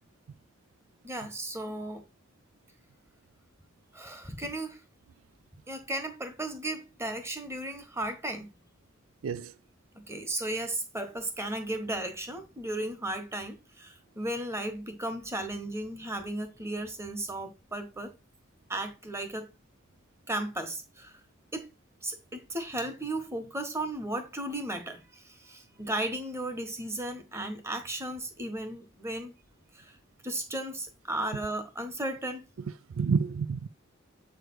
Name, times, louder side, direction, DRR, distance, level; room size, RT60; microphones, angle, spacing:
voice 1, 1.0-2.0 3.9-4.8 5.7-8.5 9.9-18.1 18.7-19.5 20.3-21.1 21.5-21.7 22.0-29.3 29.7-29.9 30.2-32.4, right 1 dB, 15° right, 1.2 m, -35 dB
voice 2, 9.2-9.6 32.6-33.7, right 5 dB, 85° right, 0.4 m, -30 dB
7.9 x 3.2 x 6.1 m
head